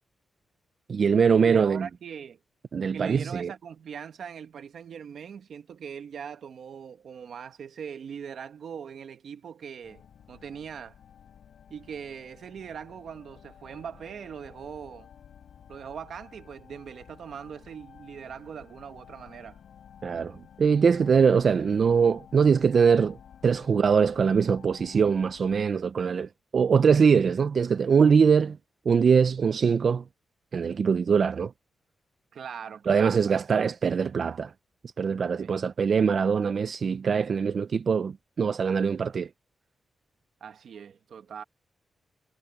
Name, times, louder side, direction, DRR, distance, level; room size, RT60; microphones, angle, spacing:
voice 1, 0.9-1.9 2.7-3.5 20.0-23.2 23.4-28.6 28.9-30.0 30.5-31.5 32.9-34.5 35.0-39.3, right 6 dB, 50° right, 0.4 m, -22 dB
voice 2, 1.4-2.4 2.9-10.0 10.3-10.9 11.7-15.1 15.7-19.6 32.3-33.4 35.4-35.5 40.4-41.4, right 7 dB, 70° right, 1.7 m, -41 dB
sound 1, 9.8-25.6, left 8 dB, 80° left, 4.5 m, -52 dB
wide cardioid pair, 140°, 0 cm